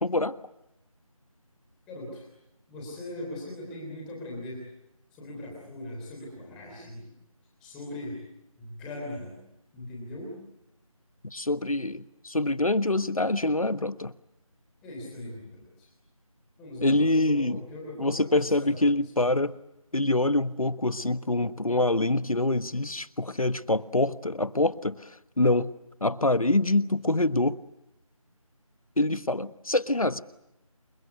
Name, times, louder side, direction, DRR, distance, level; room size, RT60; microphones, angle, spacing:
voice 1, 0.0-0.4 11.3-14.1 16.8-17.6 18.0-19.6 19.9-25.1 25.4-25.7 26.0-27.6 29.0-30.2, left 2 dB, 70° left, 14 dB, 1.4 m, -25 dB
voice 2, 1.9-2.3 2.7-4.6 5.1-7.1 7.6-8.2 8.6-9.3 9.7-10.4 14.8-15.9 16.6-19.4, left 1 dB, 5° left, -2 dB, 3.3 m, -40 dB
29.0 x 23.5 x 8.1 m, 0.88 s
figure-of-eight pair, 170°, 19 cm